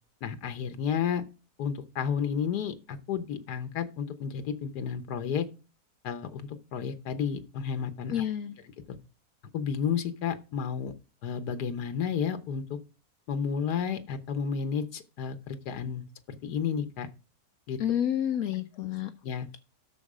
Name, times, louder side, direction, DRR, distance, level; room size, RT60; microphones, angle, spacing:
voice 1, 0.2-1.2 1.6-5.5 6.0-8.1 9.5-10.9 11.2-12.8 13.3-17.1 17.7-17.8 19.2-19.5, left 7 dB, 90° left, 10 dB, 1.5 m, -32 dB
voice 2, 8.1-8.6 17.8-19.1, left 10 dB, 70° left, 9 dB, 1.2 m, -29 dB
13.0 x 4.3 x 4.9 m, 0.32 s
omnidirectional pair, 1.7 m